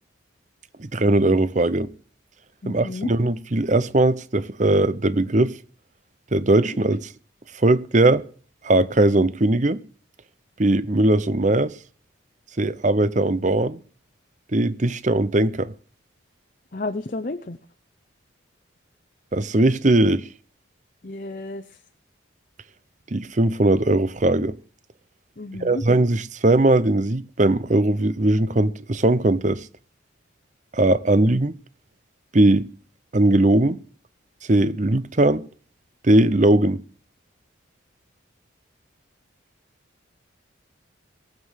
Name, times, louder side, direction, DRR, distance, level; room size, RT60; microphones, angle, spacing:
voice 1, 0.8-1.9 2.6-5.6 6.3-7.1 7.6-8.2 8.6-9.8 10.6-11.7 12.6-13.8 14.5-15.7 19.3-20.3 23.1-24.5 25.6-29.7 30.7-31.5 32.3-32.7 33.1-33.8 34.5-35.4 36.0-36.8, right 2 dB, 35° right, 0.7 m, -19 dB
voice 2, 2.6-3.1 16.7-17.6 21.0-21.7 25.4-25.8, left 2 dB, 40° left, 0.7 m, -31 dB
18.5 x 7.4 x 6.5 m
head